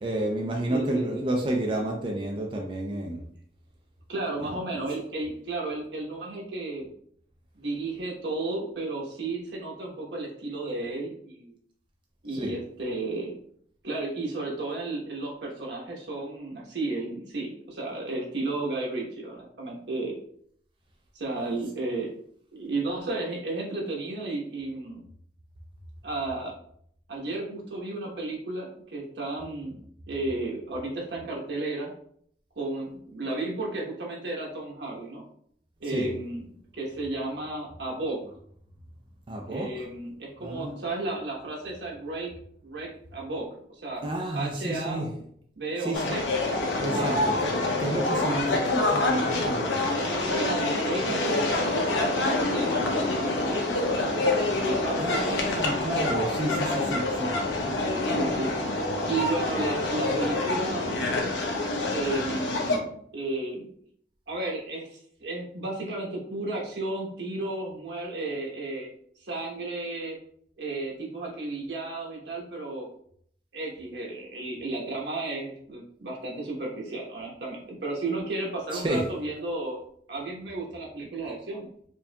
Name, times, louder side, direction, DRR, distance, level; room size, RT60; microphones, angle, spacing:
voice 1, 0.0-3.2 4.4-4.5 12.3-12.6 35.9-36.1 39.3-39.7 40.4-40.7 44.0-45.1 45.8-46.0 46.8-49.8 55.0-57.8 78.7-79.1, right 1 dB, 30° right, 0 dB, 0.4 m, -30 dB
voice 2, 0.7-1.2 4.1-6.9 7.5-11.6 12.2-13.3 13.8-20.1 21.1-22.1 22.5-25.0 26.0-26.5 27.1-29.8 30.1-31.9 32.6-35.2 35.8-36.4 36.7-38.2 39.5-42.3 42.6-43.5 43.8-44.0 44.3-45.2 45.6-46.2 46.9-47.2 47.8-47.9 49.8-53.6 53.9-55.6 58.1-58.8 59.1-61.2 61.9-63.7 64.3-68.9 69.2-70.2 70.6-72.9 73.5-79.8 80.1-81.7, right 2 dB, 80° right, -2 dB, 1.1 m, -33 dB
sound 1, 45.9-62.8, left 2 dB, 90° left, 0.7 m, -26 dB
4.5 x 2.7 x 2.3 m, 0.65 s
head